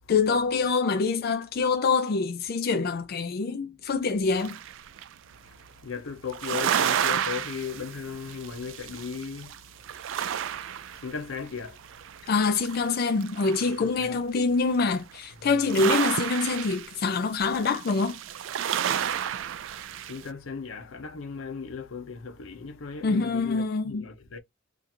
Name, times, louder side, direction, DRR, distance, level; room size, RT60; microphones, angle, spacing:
voice 1, 0.1-4.6 12.3-18.2 23.0-24.1, left 4 dB, 50° left, 0.4 m, -25 dB
sound 1, 4.3-5.1 6.3-9.6 9.8-11.5 11.8-13.9 14.9-15.2 15.6-20.2, right 9 dB, 70° right, 0.3 m, -31 dB
voice 2, 5.8-9.6 10.9-11.8 13.7-14.2 15.4-15.6 19.9-24.4, left 6 dB, 90° left, 0.7 m, -37 dB
2.7 x 2.5 x 4.2 m
head